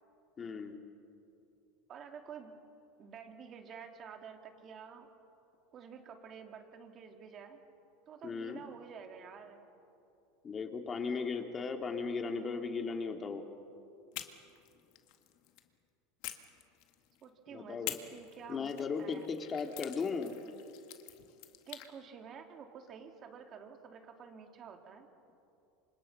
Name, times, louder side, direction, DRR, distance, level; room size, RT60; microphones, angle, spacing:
voice 1, 0.4-0.8 8.2-8.6 10.4-13.4 17.5-18.0 18.5-20.3, left 5 dB, 25° left, 5 dB, 2.4 m, -36 dB
voice 2, 1.9-2.5 3.0-5.1 5.7-7.6 8.1-9.6 17.2-18.7 19.0-19.3 21.7-25.1, right 6 dB, 40° right, 4 dB, 3.0 m, -50 dB
sound 1, 14.1-15.7 16.2-17.2 17.8-21.9, left 14 dB, 60° left, 1.9 m, -47 dB
28.0 x 25.5 x 5.8 m, 2.7 s
supercardioid pair, 120°, 0 cm